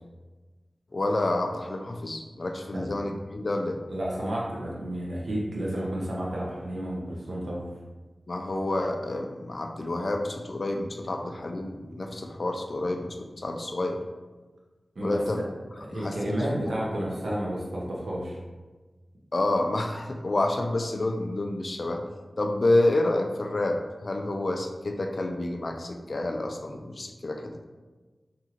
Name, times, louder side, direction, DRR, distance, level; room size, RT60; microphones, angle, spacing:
voice 1, 0.9-3.8 8.3-14.0 15.0-15.4 15.7-16.6 19.3-22.0 22.4-27.6, left 2 dB, 55° left, 4 dB, 0.3 m, -29 dB
voice 2, 3.9-7.6 15.0-15.5 15.8-18.4, right 1 dB, 80° right, -4 dB, 0.7 m, -31 dB
2.8 x 2.5 x 2.8 m, 1.3 s
wide cardioid pair, 60°, 0 cm